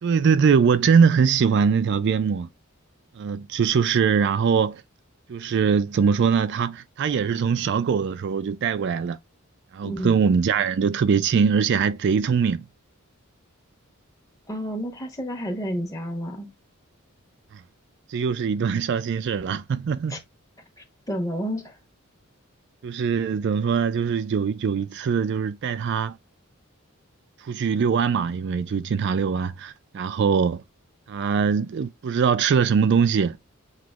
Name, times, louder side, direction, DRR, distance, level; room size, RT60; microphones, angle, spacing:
voice 1, 0.0-2.5 3.2-4.8 5.3-9.2 9.7-12.6 18.1-20.2 22.8-26.2 27.4-30.6 31.1-33.4, right 6 dB, 55° right, 0.3 m, -22 dB
voice 2, 9.8-10.2 14.5-16.5 20.1-20.2 20.8-21.7, equal, 15° left, 1.0 m, -30 dB
7.5 x 3.0 x 2.3 m
head